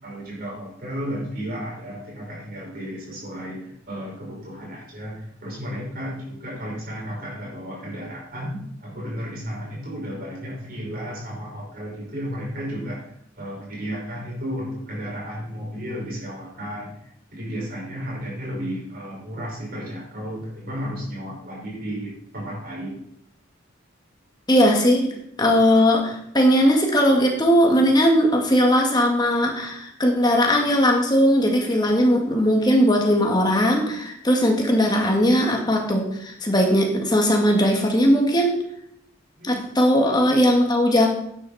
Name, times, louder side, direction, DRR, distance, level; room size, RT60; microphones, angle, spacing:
voice 1, 0.0-13.1 13.4-16.9 17.3-23.0 39.4-39.6, equal, 45° right, -3 dB, 5.3 m, -33 dB
voice 2, 24.5-25.1 25.4-38.6 39.4-41.1, equal, 20° left, 1 dB, 2.0 m, -19 dB
11.5 x 9.9 x 4.2 m, 0.73 s
head